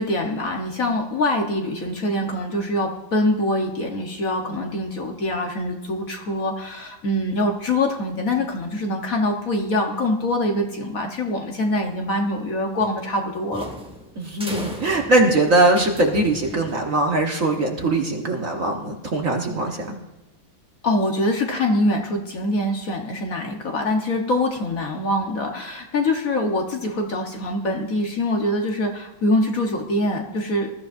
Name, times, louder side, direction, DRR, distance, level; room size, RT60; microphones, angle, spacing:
voice 1, 0.0-13.7 20.8-30.7, left 1 dB, 50° left, 2 dB, 1.4 m, -24 dB
sound 1, 12.8-17.2, equal, 5° right, 1.1 m, -37 dB
voice 2, 14.2-20.0, right 2 dB, 45° right, 2 dB, 1.4 m, -21 dB
20.5 x 13.5 x 2.6 m, 1.0 s
omnidirectional pair, 2.2 m